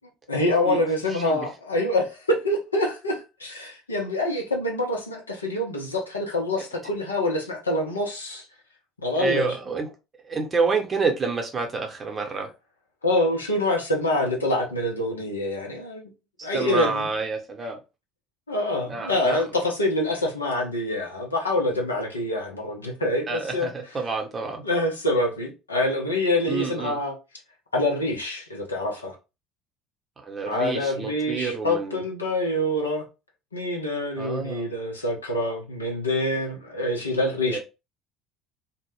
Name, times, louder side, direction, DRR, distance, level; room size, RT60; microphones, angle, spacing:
voice 1, 0.3-8.4 9.0-9.6 13.0-16.0 16.4-17.1 18.5-23.7 24.6-27.1 27.7-29.2 30.5-33.0 33.5-37.6, left 1 dB, 85° left, 0.5 m, -26 dB
voice 2, 9.2-9.9 10.3-12.5 16.4-17.8 18.9-19.4 23.3-24.6 26.5-27.0 30.2-32.0 34.2-34.7 37.5-37.6, right 4 dB, 30° right, 0.7 m, -28 dB
2.1 x 2.0 x 3.0 m
figure-of-eight pair, 60°, 0 cm